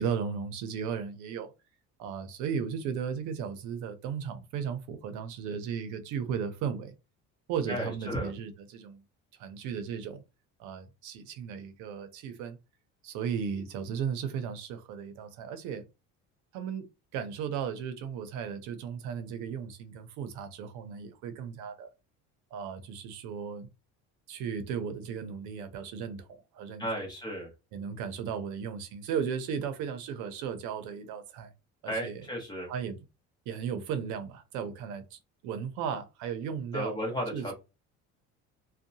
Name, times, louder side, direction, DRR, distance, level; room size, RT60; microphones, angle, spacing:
voice 1, 0.0-1.5 2.0-6.9 7.5-9.0 9.4-10.2 10.6-12.6 13.0-15.8 16.5-16.9 17.1-21.9 22.5-23.7 24.3-27.1 27.7-31.5 31.8-32.3 32.7-33.0 33.5-37.0 37.3-37.5, right 7 dB, 75° right, 0.7 m, -35 dB
voice 2, 7.7-8.3 26.8-27.5 31.9-32.7 36.7-37.5, equal, 15° left, 1.0 m, -34 dB
2.7 x 2.2 x 2.6 m
cardioid pair, 155°, 30 cm